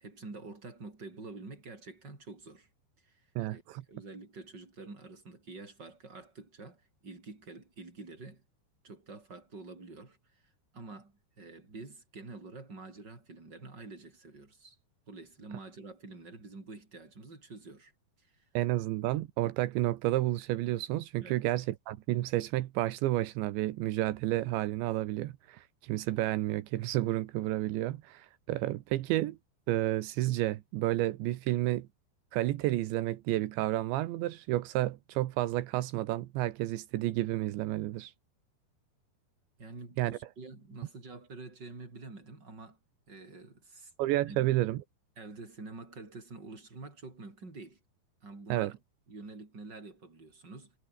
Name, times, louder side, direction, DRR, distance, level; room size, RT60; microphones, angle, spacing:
voice 1, 0.0-2.7 3.0-8.4 8.8-10.4 10.7-14.8 15.1-17.9 18.2-18.5 21.2-21.4 39.6-42.8 43.1-43.9 44.3-44.5 45.2-47.8 48.2-48.8 49.1-50.7, right 3 dB, 20° right, 6.1 m, -47 dB
voice 2, 3.4-3.8 18.5-29.4 29.7-31.9 32.3-38.1 40.0-40.2 44.0-44.8 48.5-48.7, right 16 dB, 85° right, 3.4 m, -31 dB
omnidirectional pair, 5.2 m